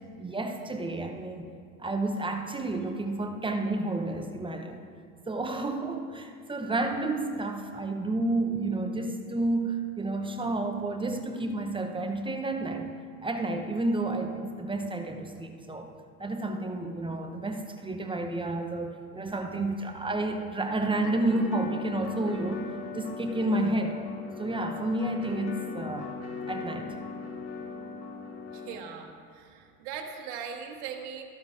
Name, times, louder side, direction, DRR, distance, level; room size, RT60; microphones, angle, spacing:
voice 1, 0.2-1.5 1.8-4.8 5.3-12.9 13.2-15.9 16.2-22.7 22.9-24.0 24.4-26.1 26.5-26.9, right 2 dB, 10° right, 4 dB, 0.8 m, -30 dB
sound 1, 20.8-28.7, left 5 dB, 35° left, 1.8 m, -39 dB
voice 2, 28.5-31.2, right 7 dB, 55° right, 2 dB, 1.2 m, -40 dB
14.0 x 12.0 x 2.6 m, 2.1 s
hypercardioid pair, 85°, 45 cm